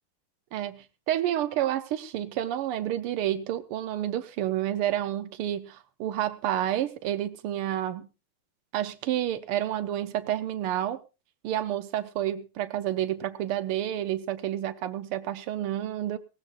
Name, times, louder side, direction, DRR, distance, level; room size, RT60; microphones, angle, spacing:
voice 1, 0.5-8.1 8.7-11.0 11.4-16.2, right 12 dB, 85° right, 12 dB, 1.8 m, -29 dB
19.0 x 17.5 x 2.5 m, 0.29 s
omnidirectional pair, 2.4 m